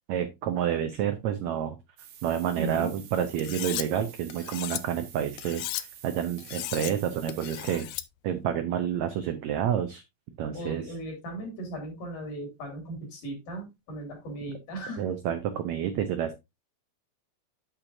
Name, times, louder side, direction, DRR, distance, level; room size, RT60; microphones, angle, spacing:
voice 1, 0.1-1.8 2.2-7.9 8.2-10.0 10.4-10.9 15.0-16.4, right 9 dB, 90° right, 9 dB, 1.5 m, -29 dB
sound 1, 2.0-7.8, right 9 dB, 65° right, 2.8 m, -49 dB
voice 2, 2.6-2.9 10.5-15.0, right 2 dB, 60° left, 3 dB, 4.3 m, -37 dB
Cutlery silverware, 3.4-3.9 4.3-4.8 5.4-5.8 6.4-6.9 7.3-8.1, left 15 dB, 80° left, 1.9 m, -35 dB
8.9 x 8.2 x 2.6 m, 0.21 s
omnidirectional pair, 4.3 m